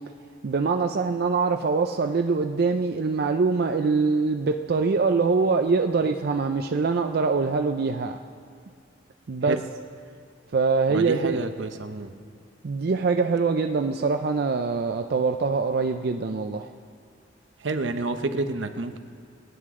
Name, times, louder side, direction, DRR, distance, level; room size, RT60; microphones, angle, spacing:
voice 1, 0.4-8.2 9.3-9.6 10.5-11.4 12.6-16.7, right 4 dB, 55° right, 5 dB, 0.5 m, -24 dB
voice 2, 10.9-12.1 17.6-19.0, right 2 dB, 80° right, 8 dB, 0.8 m, -29 dB
23.5 x 9.4 x 3.7 m, 2.3 s
head